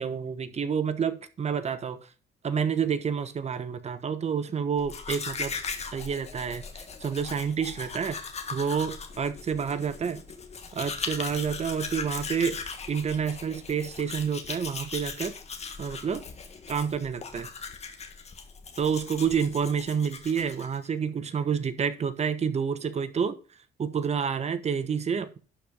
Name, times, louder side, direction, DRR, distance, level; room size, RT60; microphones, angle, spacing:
voice 1, 0.0-2.1 2.4-5.5 5.9-10.2 10.7-12.6 12.9-15.3 15.8-16.2 16.7-17.5 18.8-23.4 23.8-25.4, right 7 dB, 40° right, 1.1 m, -29 dB
Domestic sounds home sounds, 4.8-20.9, left 5 dB, 40° left, 1.6 m, -39 dB
11.5 x 4.5 x 5.3 m
cardioid pair, 95°, 17 cm